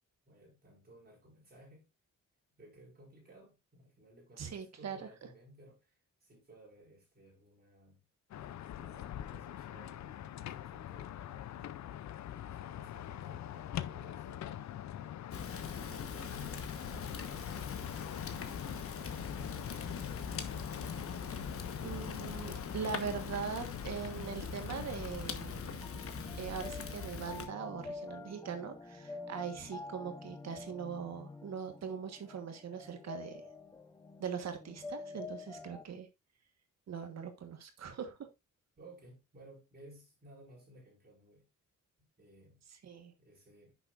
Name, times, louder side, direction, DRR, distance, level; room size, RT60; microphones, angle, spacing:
voice 1, 0.3-1.9 2.5-8.0 8.8-11.8 12.2-14.5 15.2-17.6 18.4-22.0 38.8-41.5 42.2-42.6 43.2-43.7, right 1 dB, 30° right, 5.1 m, -59 dB
voice 2, 4.4-5.1 21.8-25.6 26.3-33.4 34.2-36.1 36.9-38.3 42.8-43.1, right 6 dB, 55° right, 1.5 m, -41 dB
sound 1, 8.3-25.7, left 11 dB, 60° left, 0.6 m, -44 dB
Fire, 15.3-27.5, left 5 dB, 45° left, 1.2 m, -42 dB
sound 2, 25.0-35.8, left 3 dB, 10° left, 0.6 m, -48 dB
9.8 x 6.9 x 2.5 m
wide cardioid pair, 165°, 31 cm